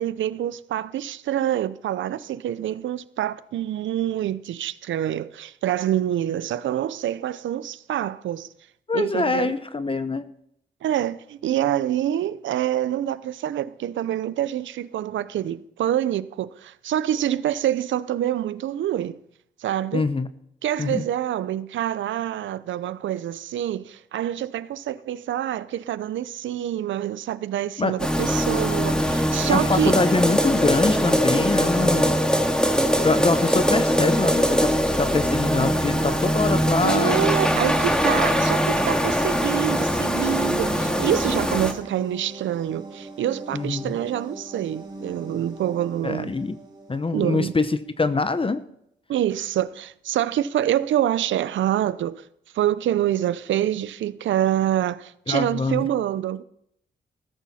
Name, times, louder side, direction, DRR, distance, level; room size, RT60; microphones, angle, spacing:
voice 1, 0.0-8.5 8.9-9.5 10.8-19.2 19.6-20.1 20.6-30.0 36.8-46.3 47.1-47.5 49.1-52.2 52.5-56.4, right 11 dB, 80° right, 0.6 m, -26 dB
voice 2, 8.9-10.3 19.9-20.3 20.8-21.0 27.8-27.9 29.4-32.2 33.0-37.3 43.5-44.0 46.0-46.6 46.9-48.6 55.3-55.9, left 3 dB, 30° left, 0.8 m, -24 dB
sound 1, 28.0-41.7, equal, 5° left, 2.1 m, -22 dB
sound 2, 34.1-47.7, right 1 dB, 20° right, 3.4 m, -41 dB
14.0 x 13.5 x 4.3 m
cardioid pair, 60°, 19 cm